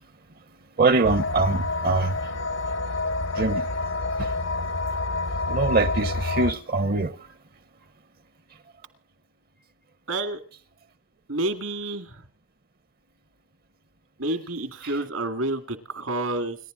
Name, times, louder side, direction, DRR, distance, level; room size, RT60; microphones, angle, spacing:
voice 1, 0.8-2.1 3.4-3.6 5.5-7.1, right 3 dB, 45° right, 0.8 m, -23 dB
sound 1, 1.0-6.5, left 2 dB, 60° left, 0.8 m, -28 dB
voice 2, 10.1-10.4 11.3-12.2 14.2-16.6, right 2 dB, 75° right, 2.1 m, -29 dB
29.5 x 11.5 x 3.8 m
head